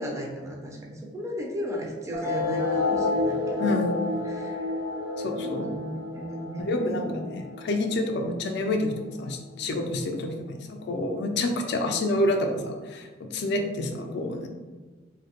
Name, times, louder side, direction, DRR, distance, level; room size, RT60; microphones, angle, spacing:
voice 1, 0.0-3.8 4.2-4.7 5.4-7.1, equal, 15° right, -1 dB, 0.4 m, -35 dB
sound 1, 2.1-9.1, left 2 dB, 75° right, 0.9 m, -30 dB
voice 2, 3.6-4.1 5.2-5.7 6.6-8.9 9.2-14.5, left 2 dB, 60° left, 4 dB, 0.3 m, -28 dB
2.6 x 2.1 x 2.8 m, 1.3 s
head